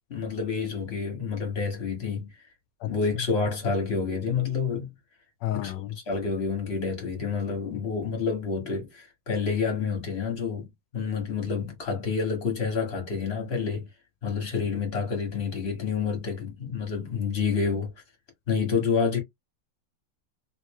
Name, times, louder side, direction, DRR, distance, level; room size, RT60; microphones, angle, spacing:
voice 1, 0.1-2.3 2.8-4.9 5.5-5.7 6.1-13.9 14.2-17.9 18.5-19.2, left 5 dB, 35° left, 1.7 m, -28 dB
voice 2, 5.4-6.0, left 12 dB, 80° left, 1.3 m, -30 dB
3.6 x 3.0 x 3.1 m
omnidirectional pair, 1.9 m